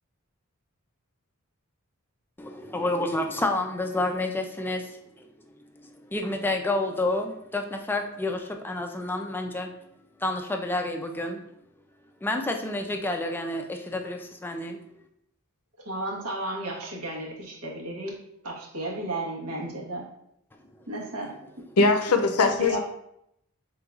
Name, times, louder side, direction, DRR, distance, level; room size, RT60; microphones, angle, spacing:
voice 1, 2.4-5.3 5.7-9.7 10.2-11.4 12.2-14.8, left 2 dB, 10° left, 0.3 m, -29 dB
voice 2, 15.8-18.1 18.4-20.1 20.9-21.3 22.6-22.8, right 1 dB, 80° right, 1.2 m, -33 dB
voice 3, 21.8-22.8, left 3 dB, 80° left, 0.5 m, -21 dB
5.4 x 3.7 x 2.3 m
head